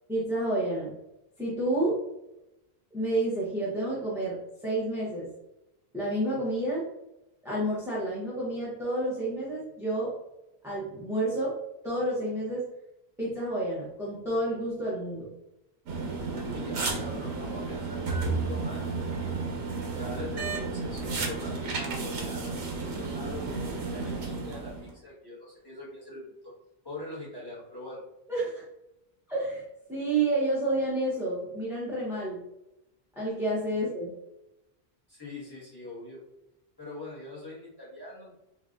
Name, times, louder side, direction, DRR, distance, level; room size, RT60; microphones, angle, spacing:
voice 1, 0.1-0.9 1.4-2.0 2.9-5.3 5.9-6.9 7.4-10.1 10.6-11.6 11.8-12.6 13.2-15.3 28.3-28.6 29.3-29.6 29.9-32.4 33.2-34.1, right 1 dB, 5° right, -7 dB, 0.5 m, -29 dB
sound 1, 15.9-24.9, right 4 dB, 85° right, 0.9 m, -32 dB
voice 2, 16.3-19.5 19.9-26.5 26.8-28.0 35.1-36.2 36.8-38.3, left 2 dB, 20° left, -8 dB, 1.2 m, -43 dB
3.2 x 2.4 x 2.5 m, 0.91 s
omnidirectional pair, 1.1 m